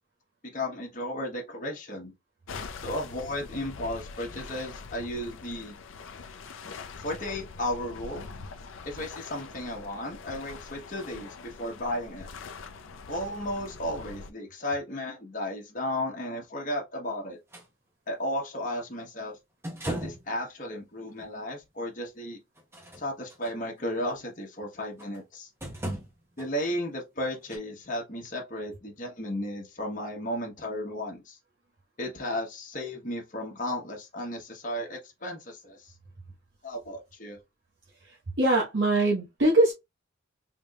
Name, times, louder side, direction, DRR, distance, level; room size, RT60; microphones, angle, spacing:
voice 1, 0.5-2.1 2.8-5.7 7.0-8.3 8.8-12.3 13.1-17.4 18.1-19.4 19.8-22.4 23.0-25.5 26.4-31.4 32.0-35.9 36.6-37.4, left 1 dB, 40° left, 1.1 m, -34 dB
sound 1, 2.5-14.3, left 4 dB, 75° left, 0.5 m, -43 dB
sound 2, 17.5-17.7 19.6-20.3 21.2-21.3 22.6-23.5 25.0-25.2 25.6-26.5 27.5-27.6, right 1 dB, 10° right, 0.8 m, -36 dB
voice 2, 38.0-39.7, right 2 dB, 60° right, 1.0 m, -23 dB
3.8 x 3.4 x 2.3 m
head